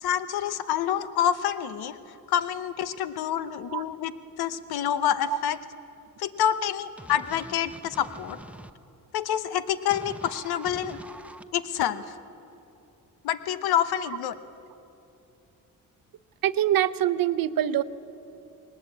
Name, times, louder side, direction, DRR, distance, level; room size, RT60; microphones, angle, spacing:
voice 1, 0.0-2.0 2.3-4.1 4.4-5.6 6.2-8.4 9.1-11.0 11.5-12.0 13.2-14.4, left 10 dB, 85° left, 13 dB, 0.9 m, -27 dB
sound 1, 7.0-8.7 9.9-11.4, right 1 dB, 5° right, 0.8 m, -44 dB
voice 2, 16.4-17.8, right 12 dB, 65° right, 14 dB, 0.8 m, -24 dB
20.0 x 19.0 x 8.4 m, 2.9 s
cardioid pair, 90°, 37 cm